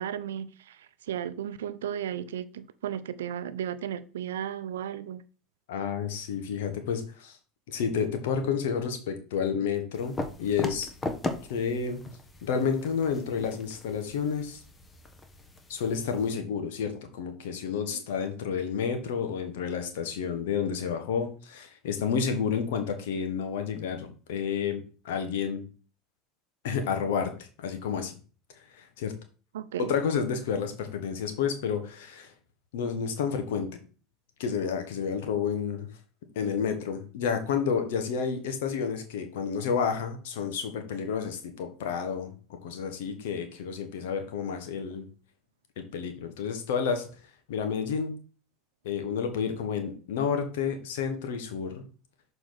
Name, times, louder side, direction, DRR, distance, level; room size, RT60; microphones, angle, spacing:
voice 1, 0.0-5.2 17.9-18.0 29.5-29.9, right 10 dB, 90° right, 0.5 m, -35 dB
voice 2, 5.7-7.4 7.7-10.9 11.5-12.0 12.4-14.6 15.7-25.6 26.6-28.2 28.7-29.2 29.8-32.3 32.7-33.7 34.4-35.9 36.3-42.3 42.6-45.1 45.8-47.1 47.5-48.2 48.8-51.8, left 6 dB, 80° left, 1.5 m, -30 dB
sound 1, 9.9-16.3, left 2 dB, 20° left, 1.2 m, -39 dB
6.6 x 4.9 x 4.1 m
hypercardioid pair, 95°, 0 cm